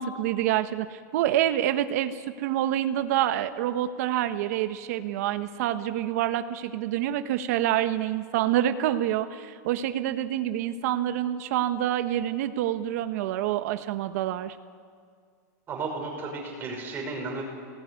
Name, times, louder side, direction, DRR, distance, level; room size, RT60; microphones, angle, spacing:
voice 1, 0.0-14.5, right 12 dB, 55° right, 9 dB, 1.4 m, -27 dB
voice 2, 15.7-17.4, right 3 dB, 20° right, 0 dB, 5.7 m, -33 dB
26.0 x 19.0 x 9.7 m, 2.1 s
supercardioid pair, 165°, 10 cm